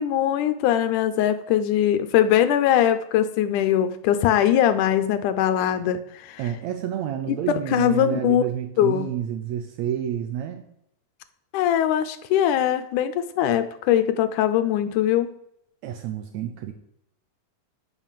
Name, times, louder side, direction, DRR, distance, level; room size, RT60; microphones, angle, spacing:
voice 1, 0.0-6.4 7.3-7.4 7.7-8.4 8.8-9.1 11.5-15.3, left 11 dB, 75° left, 10 dB, 1.9 m, -21 dB
voice 2, 6.4-10.6 15.8-16.7, right 10 dB, 80° right, 6 dB, 1.6 m, -29 dB
11.0 x 5.7 x 7.4 m, 0.76 s
omnidirectional pair, 4.2 m